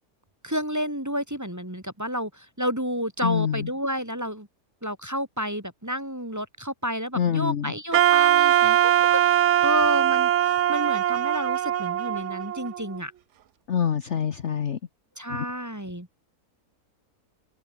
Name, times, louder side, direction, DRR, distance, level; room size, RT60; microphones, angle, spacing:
voice 1, 0.4-4.5 4.8-13.1 15.2-16.1, equal, 10° right, 2.0 m, -30 dB
voice 2, 3.2-3.7 7.1-7.7 13.7-14.8 15.3-15.4, left 8 dB, 50° left, 1.2 m, -25 dB
Wind instrument woodwind instrument, 7.9-13.0, right 11 dB, 60° right, 0.9 m, -21 dB
omnidirectional pair, 1.6 m